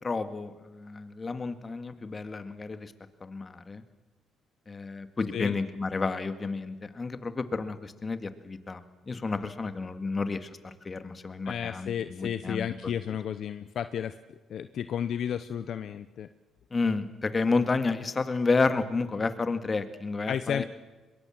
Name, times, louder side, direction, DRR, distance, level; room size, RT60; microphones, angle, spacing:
voice 1, 0.0-2.9 3.2-3.8 4.7-8.8 9.1-12.7 16.7-20.6, left 4 dB, 35° left, 10 dB, 2.1 m, -31 dB
voice 2, 11.5-14.1 14.5-16.3 20.3-20.6, left 9 dB, 65° left, 12 dB, 0.8 m, -32 dB
23.0 x 22.0 x 7.6 m, 1.2 s
supercardioid pair, 70°, 0 cm